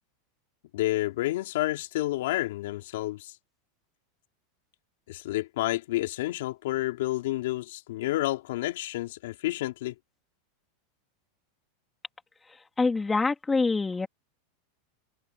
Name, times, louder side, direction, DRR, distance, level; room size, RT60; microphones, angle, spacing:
voice 1, 0.7-3.3 5.1-9.9, left 16 dB, 75° left, 3.6 m, -30 dB
voice 2, 12.8-14.1, left 3 dB, 10° left, 3.5 m, -25 dB
supercardioid pair, 140°, 0 cm